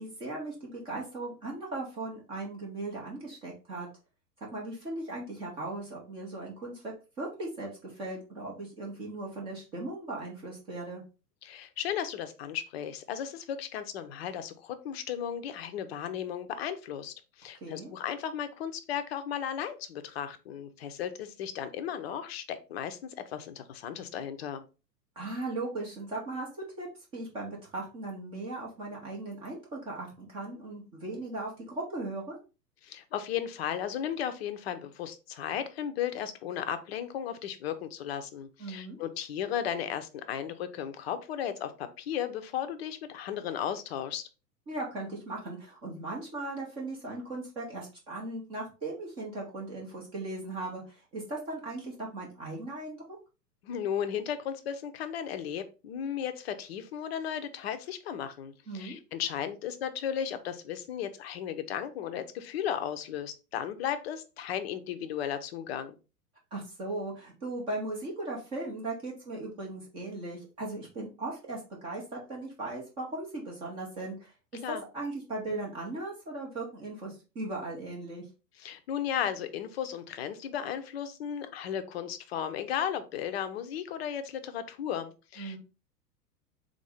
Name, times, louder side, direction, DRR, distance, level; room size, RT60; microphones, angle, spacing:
voice 1, 0.0-3.9 4.5-11.0 17.6-17.9 25.2-26.9 27.1-32.4 38.6-39.0 44.7-53.0 58.7-59.0 66.5-74.3 74.7-78.2 85.4-85.6, right 2 dB, 10° right, -2 dB, 0.4 m, -38 dB
voice 2, 11.4-24.6 32.8-44.3 53.6-66.0 74.6-74.8 78.6-85.6, left 9 dB, 40° left, 10 dB, 0.5 m, -35 dB
3.6 x 2.6 x 3.3 m, 0.31 s
figure-of-eight pair, 105°, 49 cm